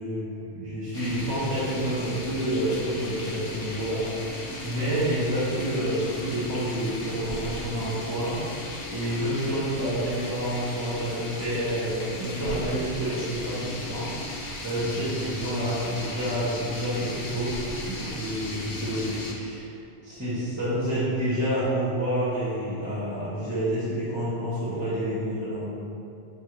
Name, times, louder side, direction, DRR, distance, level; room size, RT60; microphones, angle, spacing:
voice 1, 0.0-17.6 17.8-19.7 20.0-25.7, right 1 dB, 15° right, -10 dB, 1.5 m, -29 dB
sound 1, 0.9-19.3, left 2 dB, 75° left, 1.2 m, -37 dB
7.9 x 4.0 x 3.4 m, 2.7 s
omnidirectional pair, 1.2 m